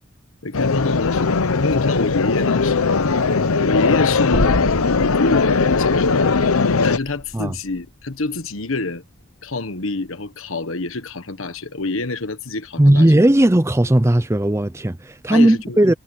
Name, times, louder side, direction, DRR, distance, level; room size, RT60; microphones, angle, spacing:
voice 1, 0.4-3.0 3.6-4.6 5.1-6.3 6.8-9.0 9.4-13.1 15.3-15.9, left 2 dB, 70° left, 1.4 m, -27 dB
sound 1, 0.5-7.0, left 4 dB, 85° left, 0.8 m, -19 dB
sound 2, 4.3-8.5, equal, 45° left, 3.7 m, -29 dB
voice 2, 12.8-15.9, right 1 dB, 15° right, 0.5 m, -16 dB
head